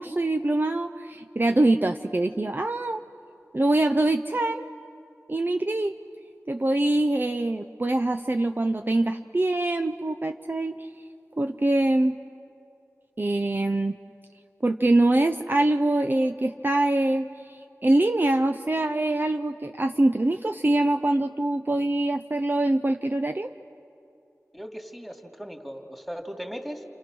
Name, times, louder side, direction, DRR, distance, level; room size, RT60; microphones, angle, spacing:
voice 1, 0.0-3.0 3.5-4.7 5.3-5.9 6.5-10.9 11.4-12.1 13.2-14.0 14.6-23.5, right 2 dB, 35° right, 6 dB, 0.7 m, -24 dB
voice 2, 24.5-26.8, equal, ahead, 3 dB, 2.8 m, -38 dB
29.0 x 28.0 x 6.3 m, 2.6 s
wide cardioid pair, 60°, 6 cm